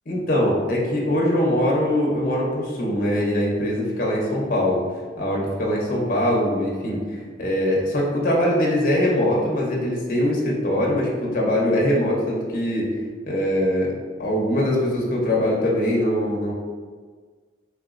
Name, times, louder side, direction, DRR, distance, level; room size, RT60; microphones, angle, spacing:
voice 1, 0.1-4.8 5.2-12.9 13.3-13.9 14.2-16.5, left 1 dB, 50° left, -3 dB, 0.6 m, -22 dB
3.2 x 2.9 x 2.4 m, 1.6 s
head